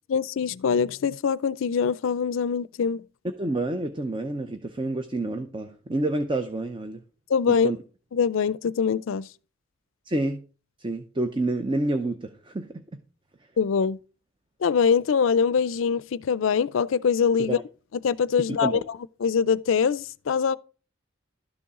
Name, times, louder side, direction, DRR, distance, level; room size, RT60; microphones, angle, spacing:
voice 1, 0.1-3.0 7.3-7.7 8.1-9.3 13.6-14.0 14.6-17.6 18.0-18.8 19.2-20.6, left 6 dB, 70° left, 0.4 m, -23 dB
voice 2, 3.3-7.0 7.6-7.8 10.1-10.4 10.8-12.7 17.4-17.6 18.6-18.9, right 2 dB, 25° right, 0.6 m, -28 dB
12.5 x 6.9 x 3.7 m
head